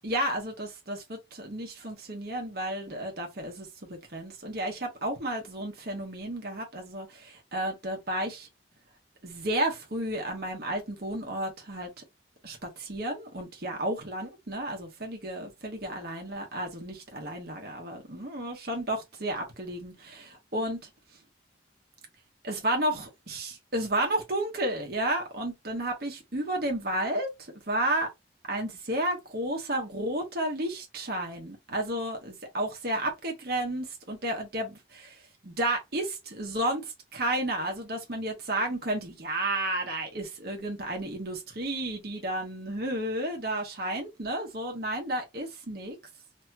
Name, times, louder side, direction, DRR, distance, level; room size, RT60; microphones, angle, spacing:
voice 1, 0.0-8.5 9.2-12.0 12.4-21.2 22.4-28.1 28.5-46.0, right 1 dB, 55° right, 1.0 m, -32 dB
2.8 x 2.8 x 2.3 m
head